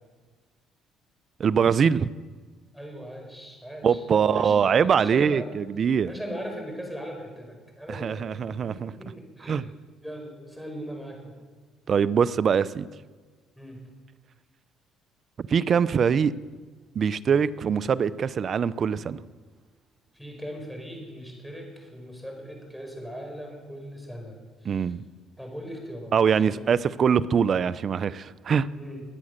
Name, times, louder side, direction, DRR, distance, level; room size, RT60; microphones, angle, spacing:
voice 1, 1.4-2.1 3.8-6.1 7.9-8.9 9.5-9.6 11.9-12.9 15.5-16.3 16.9-19.2 24.6-25.0 26.1-28.7, right 7 dB, 45° right, 17 dB, 0.5 m, -23 dB
voice 2, 2.7-5.5 6.1-9.6 10.0-11.3 13.6-13.8 20.1-24.9 25.4-26.1 26.4-26.6 28.7-29.0, equal, ahead, 1 dB, 4.9 m, -39 dB
22.5 x 8.6 x 6.6 m, 1.4 s
cardioid pair, 95°, 0 cm